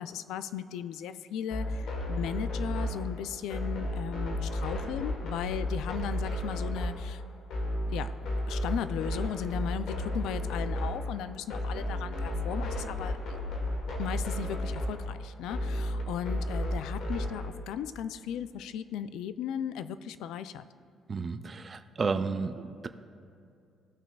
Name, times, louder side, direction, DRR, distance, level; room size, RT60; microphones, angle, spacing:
voice 1, 0.0-7.2 7.9-8.2 8.5-13.2 14.0-20.6, left 9 dB, 85° left, 13 dB, 0.3 m, -36 dB
sound 1, 1.5-17.5, left 1 dB, 65° left, 1.4 m, -33 dB
voice 2, 21.1-22.9, right 4 dB, 30° right, 9 dB, 0.3 m, -32 dB
16.0 x 5.9 x 2.3 m, 2.5 s
cardioid pair, 135°, 0 cm